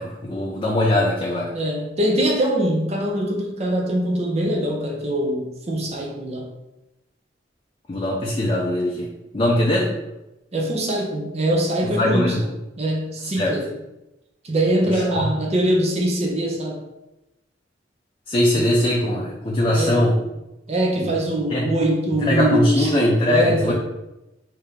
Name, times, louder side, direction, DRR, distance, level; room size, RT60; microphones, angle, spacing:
voice 1, 0.0-1.5 7.9-9.1 9.3-9.9 12.0-12.4 13.4-13.5 14.8-15.3 18.3-20.1 21.0-21.1 21.5-21.7 22.2-23.7, left 1 dB, 30° left, -3 dB, 0.5 m, -21 dB
voice 2, 1.5-6.5 10.5-12.5 12.8-13.7 14.4-16.8 18.5-18.7 19.7-20.2 20.7-22.9 23.3-23.7, right 1 dB, 35° right, 0 dB, 0.6 m, -23 dB
3.4 x 2.8 x 3.6 m, 0.95 s
head